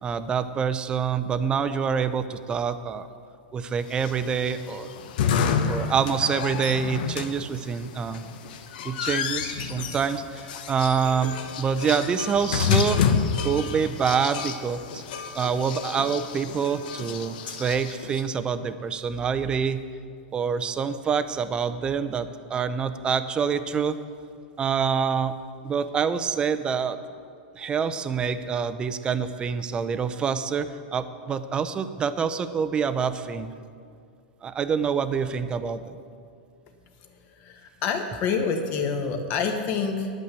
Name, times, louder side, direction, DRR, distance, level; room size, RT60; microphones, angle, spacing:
voice 1, 0.0-3.1 3.5-4.9 5.6-8.2 8.8-13.0 13.4-15.0 15.3-19.8 20.3-24.0 24.6-25.4 25.6-27.0 27.6-33.5 34.4-36.0, right 6 dB, 20° right, 12 dB, 0.6 m, -26 dB
sound 1, 3.9-18.2, left 6 dB, 65° left, 1.0 m, -29 dB
voice 2, 37.4-40.1, left 5 dB, 40° left, 5 dB, 1.5 m, -27 dB
10.5 x 8.4 x 8.2 m, 2.3 s
supercardioid pair, 145°, 5 cm